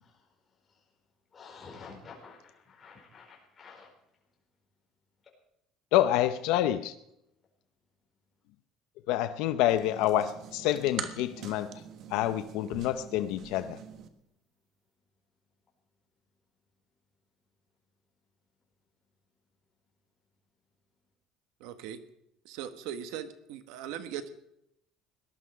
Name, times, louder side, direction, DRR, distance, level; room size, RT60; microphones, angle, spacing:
voice 1, 1.3-2.4 2.7-3.9, left 5 dB, 25° left, -2 dB, 4.7 m, -49 dB
voice 2, 5.9-6.9 9.1-11.7 12.1-13.8, left 13 dB, 75° left, 10 dB, 0.6 m, -27 dB
sound 1, 9.7-14.1, right 8 dB, 50° right, 1.4 m, -44 dB
voice 3, 21.6-22.0 22.4-24.3, right 9 dB, 85° right, 10 dB, 1.3 m, -39 dB
18.5 x 11.5 x 4.9 m, 0.80 s
cardioid pair, 150°, 0 cm